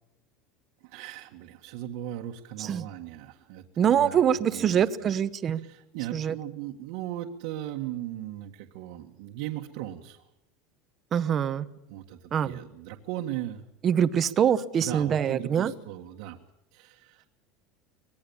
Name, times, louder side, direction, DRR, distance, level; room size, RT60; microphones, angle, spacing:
voice 1, 0.8-4.2 4.5-5.1 5.6-10.3 11.9-13.6 14.8-16.4 16.7-17.3, right 13 dB, 60° right, 1 dB, 1.7 m, -38 dB
voice 2, 3.8-5.6 6.1-6.3 11.1-11.7 12.3-12.6 13.8-15.7, right 8 dB, 25° right, 14 dB, 0.9 m, -24 dB
25.0 x 20.0 x 7.2 m, 0.86 s
cardioid pair, 175°, 0 cm